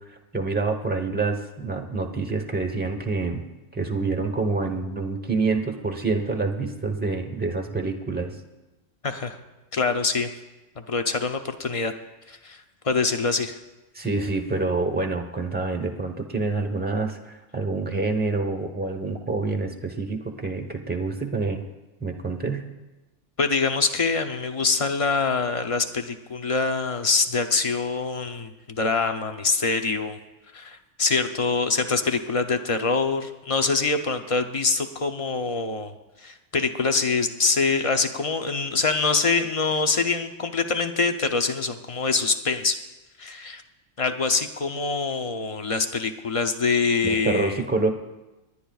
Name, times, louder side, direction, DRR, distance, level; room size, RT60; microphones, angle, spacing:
voice 1, 0.0-3.4 3.7-8.4 13.9-21.6 22.0-22.6 47.0-47.9, right 3 dB, 10° right, 3 dB, 0.9 m, -27 dB
voice 2, 9.0-9.4 9.7-10.3 10.9-11.9 12.3-12.6 12.8-13.6 23.4-30.2 30.5-35.9 36.2-42.8 43.2-43.6 44.0-47.6, left 4 dB, 35° left, 7 dB, 0.5 m, -24 dB
29.5 x 9.9 x 2.4 m, 1.1 s
omnidirectional pair, 1.3 m